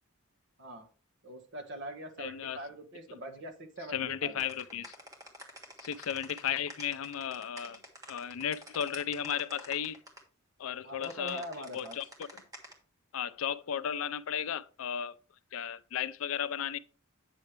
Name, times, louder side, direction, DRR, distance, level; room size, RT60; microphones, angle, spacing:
voice 1, 1.2-4.4 10.8-12.0, right 1 dB, 55° right, 1.4 m, -43 dB
voice 2, 2.2-2.6 3.9-5.0 5.8-7.8 8.1-10.0 10.6-12.4 13.1-15.1 15.5-16.8, left 9 dB, 70° left, 0.5 m, -35 dB
sound 1, 4.4-10.2 11.0-12.7, equal, 15° right, 1.4 m, -48 dB
8.3 x 6.5 x 3.2 m
head